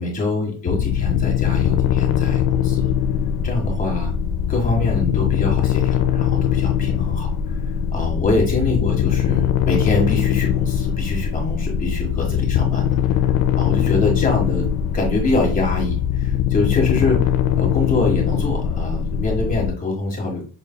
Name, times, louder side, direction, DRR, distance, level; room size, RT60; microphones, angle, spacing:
voice 1, 0.0-2.9 3.4-4.1 4.5-7.6 7.9-13.0 13.5-14.7 14.9-20.4, left 2 dB, 25° left, 0 dB, 1.6 m, -24 dB
sound 1, 0.7-19.7, left 9 dB, 85° left, 0.6 m, -21 dB
6.4 x 3.1 x 2.2 m, 0.37 s
cardioid pair, 170°, 33 cm